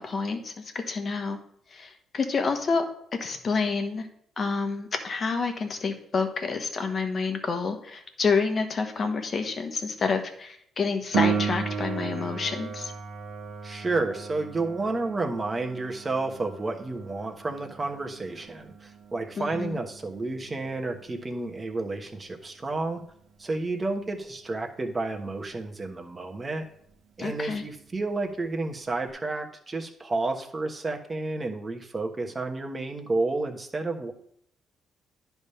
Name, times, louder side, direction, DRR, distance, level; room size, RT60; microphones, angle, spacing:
voice 1, 0.0-1.4 1.7-2.8 3.2-4.1 4.4-12.9 19.4-19.8 27.2-27.6, left 4 dB, 45° left, 6 dB, 1.2 m, -28 dB
Piano, 11.1-21.5 29.1-29.2, right 6 dB, 70° right, 0.9 m, -34 dB
voice 2, 13.6-23.0 23.4-26.7 27.2-34.1, right 3 dB, 25° right, 3 dB, 1.2 m, -31 dB
10.5 x 3.5 x 5.6 m, 0.68 s
cardioid pair, 90°, 0 cm